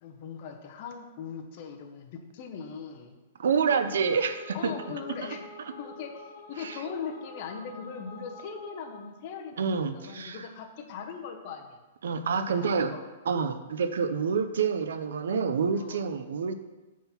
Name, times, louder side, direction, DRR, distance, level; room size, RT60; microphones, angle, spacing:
voice 1, 0.0-3.1 4.5-5.4 5.8-11.8 12.6-13.0 15.7-16.0, left 6 dB, 35° left, 3 dB, 0.6 m, -40 dB
voice 2, 3.4-4.7 6.6-6.8 9.6-10.5 12.0-12.9 13.3-16.5, right 6 dB, 85° right, 9 dB, 0.4 m, -27 dB
sound 1, 3.5-9.2, left 2 dB, 55° left, 1.3 m, -48 dB
5.8 x 3.7 x 5.6 m, 1.2 s
hypercardioid pair, 175°, 0 cm